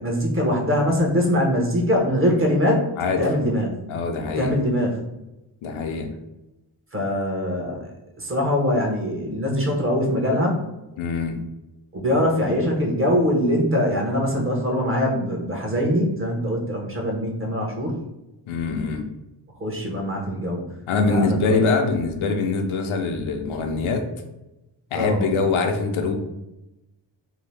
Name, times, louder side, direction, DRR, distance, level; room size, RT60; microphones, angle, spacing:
voice 1, 0.0-2.8 3.2-3.7 4.4-5.0 6.9-7.9 8.2-10.6 11.9-17.9 19.6-20.7 21.0-21.6 24.9-25.3, equal, 25° right, 0 dB, 0.8 m, -22 dB
voice 2, 3.9-4.5 5.6-6.1 11.0-11.4 18.5-19.1 20.9-24.1 24.9-26.2, left 4 dB, 85° left, 4 dB, 0.6 m, -23 dB
2.8 x 2.1 x 3.2 m, 0.95 s
cardioid pair, 75°, 47 cm